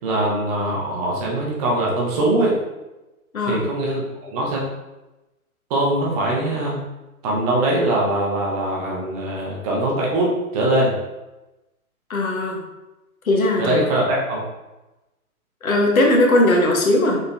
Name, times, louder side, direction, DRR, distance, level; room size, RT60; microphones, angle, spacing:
voice 1, 0.0-2.6 3.4-4.7 5.7-6.8 7.2-11.0 13.6-14.4, right 1 dB, 25° right, -3 dB, 0.9 m, -22 dB
voice 2, 12.1-12.6 13.2-13.8 15.6-17.2, left 1 dB, 70° left, 0 dB, 1.2 m, -18 dB
5.1 x 4.3 x 2.2 m, 1.0 s
figure-of-eight pair, 115°, 44 cm